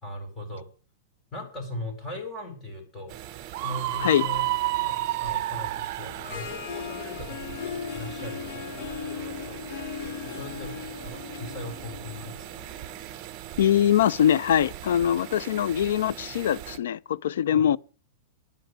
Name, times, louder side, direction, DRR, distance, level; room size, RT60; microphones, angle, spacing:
voice 1, 0.0-0.7 1.3-3.2 3.6-4.4 4.8-9.6 9.9-10.8 11.0-12.5 17.5-17.7, left 1 dB, 15° left, 4.2 m, -39 dB
sound 1, 3.1-16.8, right 12 dB, 30° right, 1.0 m, -41 dB
Screaming, 3.5-6.5, right 16 dB, 50° right, 0.7 m, -29 dB
Harp, 6.0-13.1, left 7 dB, 50° left, 1.1 m, -38 dB
voice 2, 13.6-17.8, left 10 dB, 75° left, 0.5 m, -23 dB
11.0 x 8.2 x 9.4 m
supercardioid pair, 155°, 0 cm